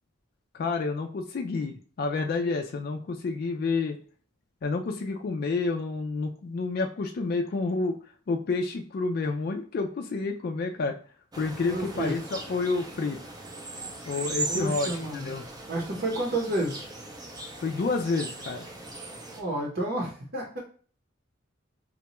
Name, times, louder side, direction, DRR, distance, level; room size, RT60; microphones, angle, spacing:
voice 1, 0.5-4.0 4.6-8.0 8.3-11.0 11.3-13.2 14.1-15.5 17.6-18.7, left 3 dB, 50° left, 4 dB, 0.3 m, -29 dB
sound 1, 11.3-19.4, right 2 dB, 20° right, 0.5 m, -38 dB
voice 2, 11.7-12.1 14.4-15.3 15.7-16.8 19.3-20.6, right 1 dB, 50° right, -2 dB, 0.8 m, -30 dB
4.0 x 2.2 x 2.9 m, 0.42 s
head